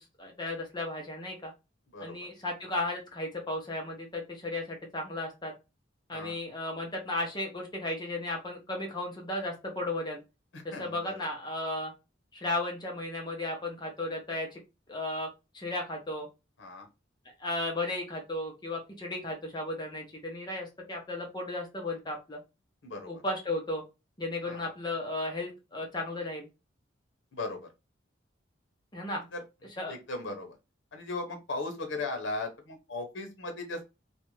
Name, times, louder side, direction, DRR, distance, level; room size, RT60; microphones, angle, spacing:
voice 1, 0.2-1.5 2.0-5.5 6.1-10.2 10.6-11.9 12.3-14.6 14.9-15.3 15.5-16.3 17.4-22.4 23.1-23.8 24.2-26.5 28.9-29.3 29.8-29.9, left 2 dB, 20° left, 1 dB, 0.6 m, -35 dB
voice 2, 1.9-2.3 6.1-6.4 10.5-11.1 16.6-16.9 22.8-23.1 24.4-24.7 27.3-27.7 29.1-29.4 29.9-30.6 30.9-33.8, left 2 dB, 70° left, 3 dB, 0.7 m, -37 dB
2.5 x 2.1 x 2.9 m, 0.26 s
head